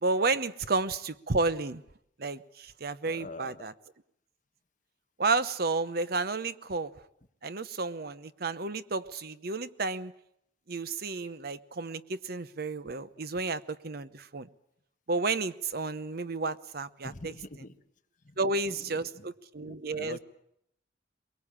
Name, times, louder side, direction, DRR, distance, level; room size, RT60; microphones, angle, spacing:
voice 1, 0.0-1.8 2.2-3.7 5.2-6.9 7.4-10.1 10.7-14.5 15.1-17.1 18.4-20.2, right 3 dB, 60° right, 14 dB, 0.9 m, -31 dB
voice 2, 3.1-3.7 17.0-17.8 18.2-18.4 18.7-19.3 19.6-20.2, left 2 dB, 45° left, 7 dB, 1.3 m, -45 dB
23.0 x 21.5 x 8.8 m, 0.74 s
head